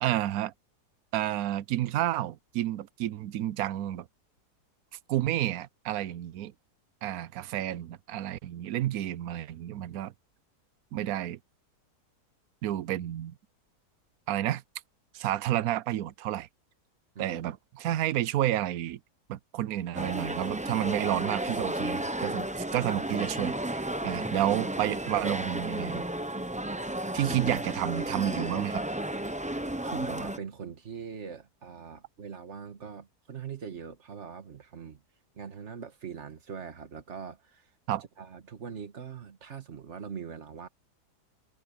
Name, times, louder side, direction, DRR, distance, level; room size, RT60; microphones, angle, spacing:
voice 1, 0.0-0.5 1.1-4.1 5.1-6.5 7.0-10.1 10.9-11.4 12.6-13.3 14.3-14.6 15.1-16.5 17.2-19.0 19.3-26.0 27.1-28.8 37.9-38.0, right 13 dB, 70° right, 1.1 m, -30 dB
voice 2, 17.2-17.5 29.8-35.0 35.4-37.7 38.2-40.7, right 6 dB, 45° right, 1.7 m, -42 dB
sound 1, 19.9-30.4, right 1 dB, 10° right, 0.4 m, -33 dB
omnidirectional pair, 1.7 m